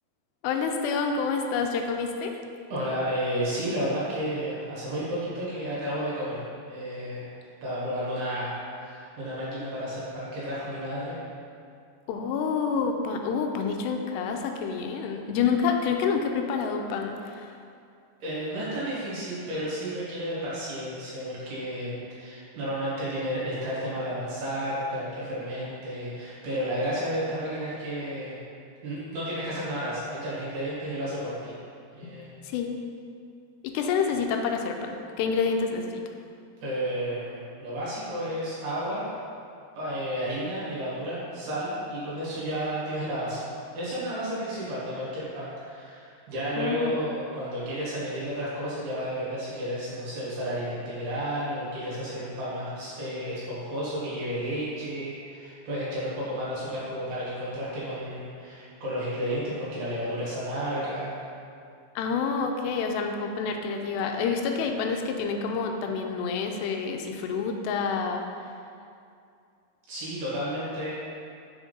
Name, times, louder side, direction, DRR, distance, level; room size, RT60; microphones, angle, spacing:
voice 1, 0.4-2.4 12.1-17.5 32.0-32.8 33.6-36.0 46.6-46.9 62.0-68.2, left 5 dB, 85° left, 4 dB, 2.7 m, -28 dB
voice 2, 2.7-7.3 7.6-11.2 18.2-28.4 28.8-31.5 31.9-32.3 36.6-39.1 39.8-43.5 43.7-61.1 69.9-70.9, equal, 70° right, -8 dB, 3.6 m, -32 dB
7.0 x 3.6 x 5.3 m, 2.4 s
omnidirectional pair, 4.8 m